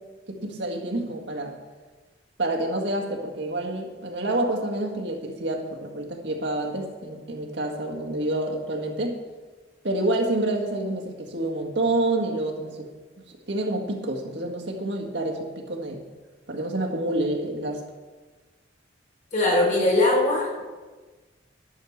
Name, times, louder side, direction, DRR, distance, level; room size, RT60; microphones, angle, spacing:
voice 1, 0.3-1.5 2.4-9.1 9.8-12.9 13.5-16.0 16.5-17.8, right 1 dB, 70° right, 0 dB, 1.9 m, -28 dB
voice 2, 19.3-20.6, left 2 dB, 40° left, -2 dB, 3.5 m, -21 dB
12.0 x 6.7 x 6.5 m, 1.3 s
head